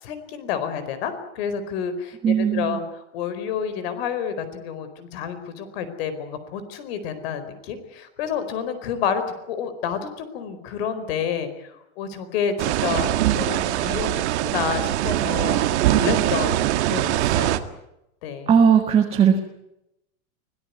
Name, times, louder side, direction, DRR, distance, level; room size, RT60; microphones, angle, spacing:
voice 1, 0.0-2.8 3.1-17.6 18.2-18.5, left 7 dB, 55° left, 11 dB, 4.6 m, -29 dB
voice 2, 2.2-2.8 18.5-19.4, right 7 dB, 15° right, 3 dB, 1.8 m, -17 dB
sound 1, 12.6-17.6, right 14 dB, 65° right, 2.0 m, -22 dB
24.5 x 18.5 x 9.5 m, 0.86 s
supercardioid pair, 170°, 37 cm